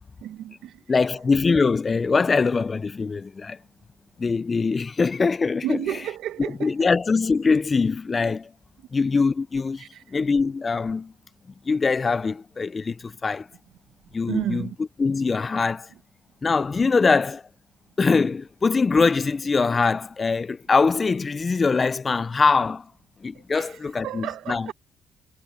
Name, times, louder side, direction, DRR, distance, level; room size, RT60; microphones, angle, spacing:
voice 1, 0.2-0.8 5.6-6.9 9.8-10.2 14.3-14.8 23.3-24.7, right 12 dB, 85° right, 1.0 m, -32 dB
voice 2, 0.9-3.6 4.2-6.0 6.4-8.5 8.9-11.1 11.7-13.5 14.1-14.7 15.0-15.9 16.4-17.4 18.0-22.9 23.2-24.7, left 4 dB, 30° left, 0.4 m, -23 dB
cardioid pair, 90°, 0 cm